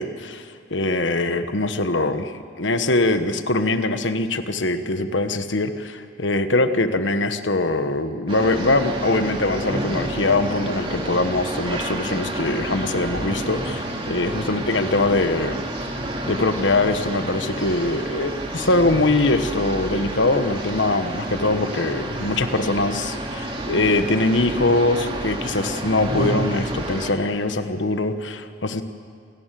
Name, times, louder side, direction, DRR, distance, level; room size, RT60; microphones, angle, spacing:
voice 1, 0.0-15.6 16.3-28.8, left 2 dB, 80° left, 9 dB, 1.4 m, -22 dB
sound 1, 8.3-27.1, right 1 dB, 30° right, 2.8 m, -29 dB
27.5 x 18.0 x 7.7 m, 2.2 s
head